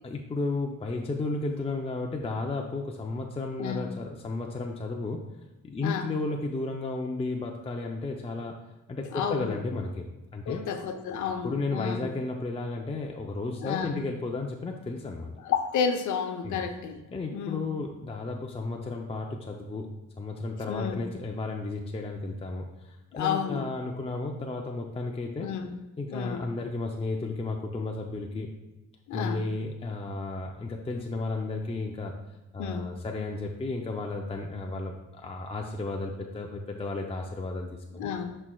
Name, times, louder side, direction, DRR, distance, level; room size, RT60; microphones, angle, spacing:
voice 1, 0.0-5.2 5.6-8.5 8.9-10.1 10.3-10.7 11.2-15.3 16.4-16.6 17.1-25.5 26.0-28.5 29.1-32.1 32.5-38.1, left 3 dB, 20° left, 1 dB, 0.5 m, -33 dB
voice 2, 3.6-3.9 5.8-6.1 9.1-9.6 10.5-12.1 13.6-14.0 15.4-17.0 17.3-17.7 20.7-21.1 23.1-23.7 25.4-25.8 26.1-26.5 29.1-29.5 32.6-32.9 38.0-38.4, left 7 dB, 75° left, 7 dB, 0.8 m, -31 dB
10.5 x 4.4 x 2.3 m, 1.1 s
cardioid pair, 90°, 30 cm